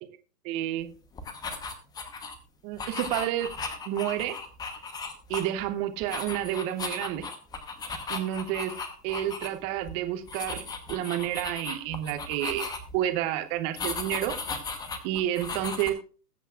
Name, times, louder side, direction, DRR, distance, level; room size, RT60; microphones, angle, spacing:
voice 1, 0.4-0.9 2.6-3.5 3.9-4.4 5.3-7.2 8.1-8.8 9.0-12.7 12.9-14.3 15.0-16.0, right 12 dB, 15° right, 9 dB, 0.6 m, -30 dB
sound 1, 1.1-2.4 2.8-5.7 6.0-9.5 9.8-9.9 10.3-13.0 13.8-15.9, left 4 dB, 10° left, 0.9 m, -36 dB
20.5 x 8.0 x 2.4 m, 0.37 s
figure-of-eight pair, 125°, 48 cm